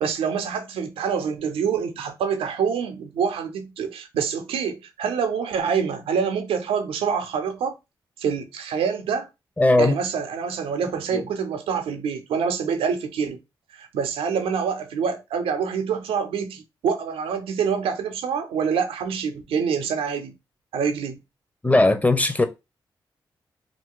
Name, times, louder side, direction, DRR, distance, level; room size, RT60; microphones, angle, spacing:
voice 1, 0.0-7.7 8.2-9.3 9.8-13.4 13.7-20.3 20.7-21.2, right 6 dB, 90° right, 0.5 m, -26 dB
voice 2, 9.6-10.0 11.1-11.2 21.6-22.5, left 2 dB, 15° left, 0.6 m, -18 dB
2.4 x 2.3 x 3.7 m
supercardioid pair, 45°, 9 cm